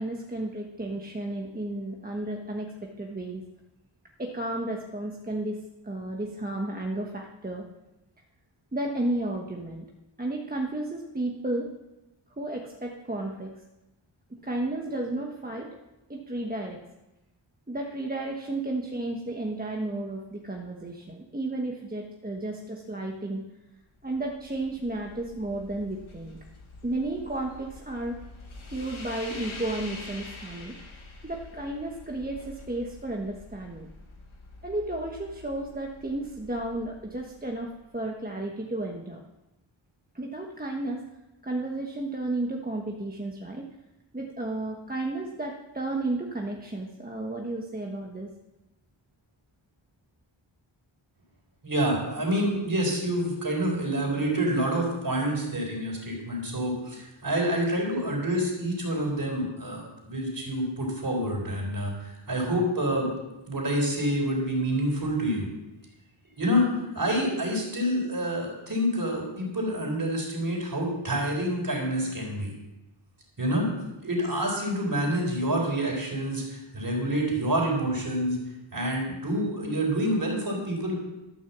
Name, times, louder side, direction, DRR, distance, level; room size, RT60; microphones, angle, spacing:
voice 1, 0.0-3.4 4.2-5.6 5.8-7.7 8.7-9.8 10.2-11.7 12.4-13.6 14.3-15.7 16.1-16.8 17.7-23.4 24.0-26.4 26.8-28.2 28.7-30.7 31.2-33.9 34.6-39.2 40.1-41.0 41.4-43.7 44.1-48.3, right 2 dB, 20° right, 0 dB, 1.2 m, -33 dB
sound 1, 23.9-38.0, left 2 dB, 85° left, 1.9 m, -46 dB
voice 2, 51.6-63.1 63.5-65.5 66.4-72.5 73.4-73.7 74.0-78.4 78.7-81.0, equal, 45° right, -1 dB, 4.3 m, -27 dB
12.5 x 6.3 x 7.3 m, 0.98 s
wide cardioid pair, 80°, 47 cm